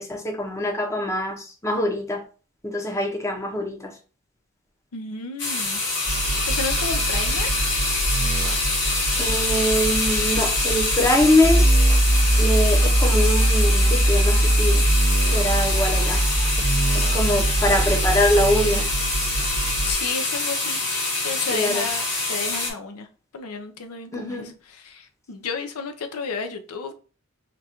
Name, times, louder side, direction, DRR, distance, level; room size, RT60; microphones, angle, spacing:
voice 1, 0.0-2.2 2.6-3.9 9.2-11.7 12.4-14.9 15.3-16.2 17.1-18.8 21.5-21.8 24.1-24.5, left 1 dB, 15° left, 0.7 m, -23 dB
voice 2, 4.9-5.8 6.2-7.5 16.8-17.5 19.9-21.0 21.2-23.1 23.3-26.9, left 4 dB, 70° left, 0.5 m, -32 dB
sound 1, 5.4-22.7, left 3 dB, 55° left, 1.4 m, -25 dB
sound 2, 6.1-19.9, right 1 dB, 25° right, 0.8 m, -22 dB
3.7 x 2.3 x 4.3 m
head